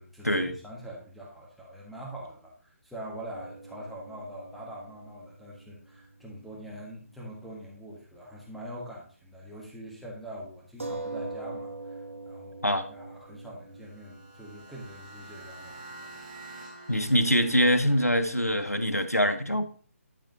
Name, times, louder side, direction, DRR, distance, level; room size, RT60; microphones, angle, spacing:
voice 1, 0.0-16.8, right 1 dB, ahead, -5 dB, 1.4 m, -44 dB
sound 1, 3.3-7.2 7.5-7.6 10.8-16.0, right 2 dB, 60° right, 1.5 m, -43 dB
sound 2, 13.7-18.8, right 2 dB, 35° right, 3.9 m, -48 dB
voice 2, 16.9-19.6, equal, 90° left, 8 dB, 1.1 m, -24 dB
12.0 x 6.3 x 2.9 m, 0.43 s
figure-of-eight pair, 145°, 8 cm